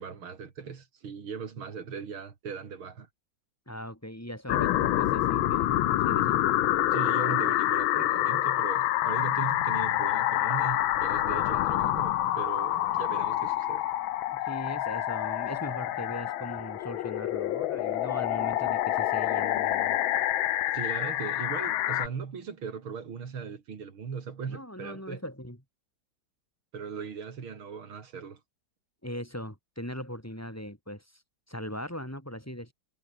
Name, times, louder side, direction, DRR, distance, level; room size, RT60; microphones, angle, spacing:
voice 1, 0.0-3.1 6.9-13.8 20.7-25.2 26.7-28.4, right 6 dB, 80° right, 3.4 m, -38 dB
voice 2, 3.7-6.4 14.3-20.0 24.5-25.6 29.0-31.2 31.5-32.7, equal, 5° left, 7.0 m, -39 dB
sound 1, 4.5-22.1, left 13 dB, 75° left, 1.6 m, -27 dB
omnidirectional pair, 2.3 m